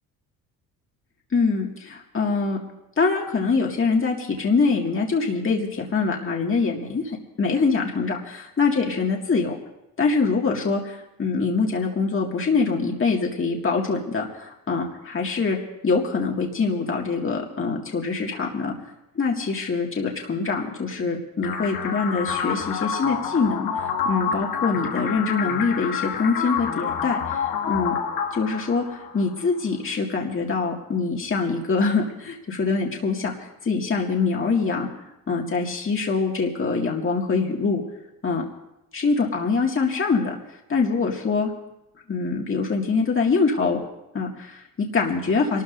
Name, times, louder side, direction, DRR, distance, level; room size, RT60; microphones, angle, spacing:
voice 1, 1.3-2.6 3.0-9.6 10.0-15.6 15.8-18.7 19.2-28.0 28.3-34.9 35.3-37.8 38.2-38.4 38.9-40.3 40.7-41.5 42.1-43.8 44.1-45.6, left 4 dB, 35° left, 0 dB, 2.1 m, -24 dB
sound 1, 21.4-29.4, left 7 dB, 65° left, 1.3 m, -28 dB
28.5 x 13.0 x 2.7 m, 0.88 s
supercardioid pair, 70°, 37 cm